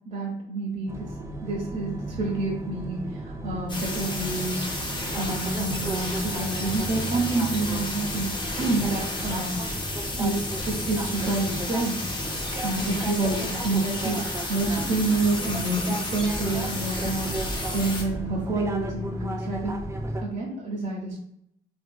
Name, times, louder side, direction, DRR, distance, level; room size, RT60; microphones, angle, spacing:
voice 1, 0.1-9.6 9.9-10.4 10.7-12.1 12.6-19.8 20.2-21.2, right 2 dB, 40° right, -5 dB, 0.7 m, -28 dB
sound 1, 0.9-20.2, right 1 dB, 15° right, 0.3 m, -34 dB
sound 2, 3.7-18.0, left 2 dB, 25° left, 0.6 m, -32 dB
2.9 x 2.6 x 2.2 m, 0.76 s
cardioid pair, 90°, 20 cm